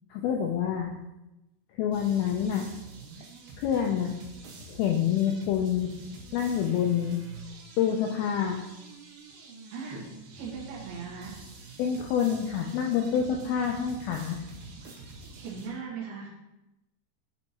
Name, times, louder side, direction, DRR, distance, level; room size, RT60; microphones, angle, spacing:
voice 1, 0.1-0.9 1.7-2.7 3.6-4.2 4.7-5.9 6.3-7.2 7.8-8.6 11.8-14.4, left 8 dB, 90° left, 1 dB, 2.1 m, -27 dB
sound 1, 1.9-15.7, right 4 dB, 85° right, 4.0 m, -47 dB
voice 2, 9.7-10.1 10.3-11.4 15.3-16.3, right 5 dB, 70° right, -5 dB, 3.1 m, -38 dB
10.5 x 5.4 x 2.9 m, 0.95 s
omnidirectional pair, 5.0 m